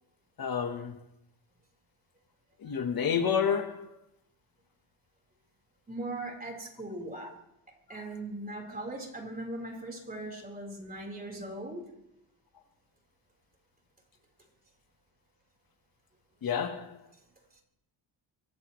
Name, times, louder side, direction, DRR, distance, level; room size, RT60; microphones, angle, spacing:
voice 1, 0.4-1.0 2.6-4.0 7.1-7.3 16.4-17.0, left 7 dB, 50° left, 1.2 m, -30 dB
voice 2, 5.9-7.3 7.9-11.9 17.5-17.6, right 1 dB, 20° right, 4.0 m, -39 dB
24.0 x 15.5 x 3.1 m
cardioid pair, 135°, 44 cm